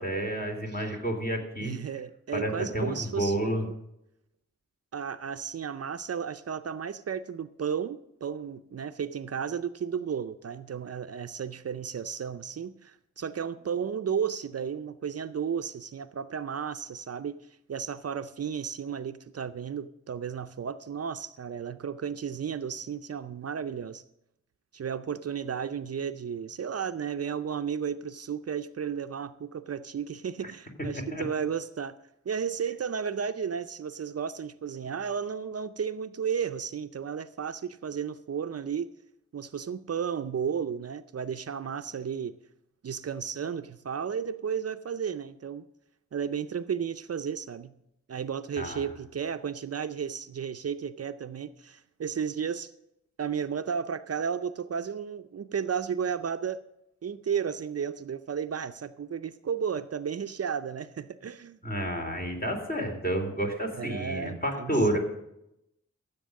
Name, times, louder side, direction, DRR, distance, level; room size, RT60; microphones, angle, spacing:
voice 1, 0.0-1.7 2.3-3.6 31.1-31.2 48.6-48.9 61.6-65.0, right 1 dB, 30° left, 2 dB, 3.1 m, -30 dB
voice 2, 1.6-3.7 4.9-17.4 17.7-24.0 24.7-31.9 32.3-38.9 39.3-42.4 42.8-45.6 46.1-47.7 48.1-52.7 53.2-56.6 57.0-61.6 63.7-65.0, right 7 dB, 55° right, 10 dB, 0.6 m, -33 dB
14.0 x 7.8 x 6.4 m, 0.83 s
wide cardioid pair, 85°, 29 cm